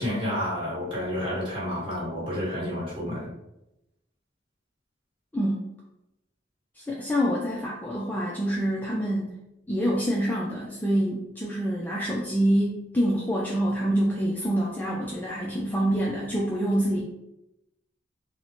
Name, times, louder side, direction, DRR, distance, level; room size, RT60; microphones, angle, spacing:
voice 1, 0.0-3.3, left 1 dB, 25° right, -7 dB, 1.2 m, -30 dB
voice 2, 5.3-5.7 6.8-9.3 9.7-17.0, equal, 10° left, -5 dB, 0.3 m, -26 dB
3.9 x 2.1 x 2.9 m, 0.90 s
head